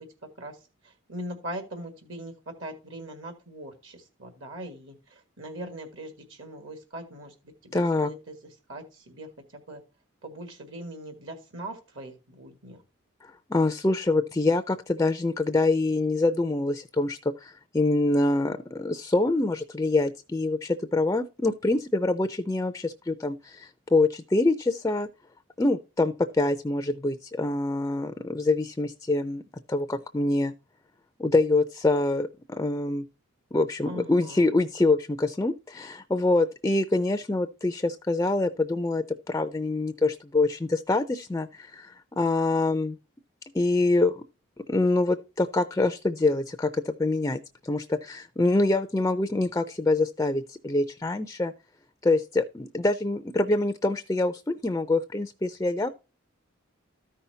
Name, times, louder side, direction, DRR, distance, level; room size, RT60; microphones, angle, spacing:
voice 1, 0.8-7.3 7.6-8.3 8.7-9.8 10.2-12.8 33.9-34.5, right 1 dB, 65° right, 1.6 m, -41 dB
voice 2, 7.7-8.1 13.2-25.1 25.6-29.4 29.7-30.5 31.2-33.0 33.5-43.0 43.5-44.2 44.7-51.5 52.0-55.9, left 2 dB, 15° left, 0.4 m, -25 dB
13.5 x 5.6 x 2.7 m
head